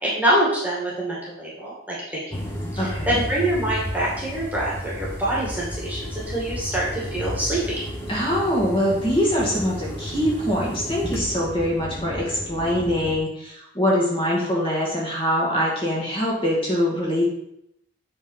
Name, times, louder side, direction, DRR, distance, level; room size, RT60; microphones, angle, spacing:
voice 1, 0.0-2.2 2.7-7.8, right 1 dB, 10° right, -6 dB, 2.0 m, -25 dB
sound 1, 2.3-13.1, equal, 10° left, 1.0 m, -33 dB
voice 2, 2.8-3.2 8.1-17.3, equal, 25° left, -5 dB, 2.0 m, -23 dB
7.9 x 4.0 x 5.5 m, 0.78 s
head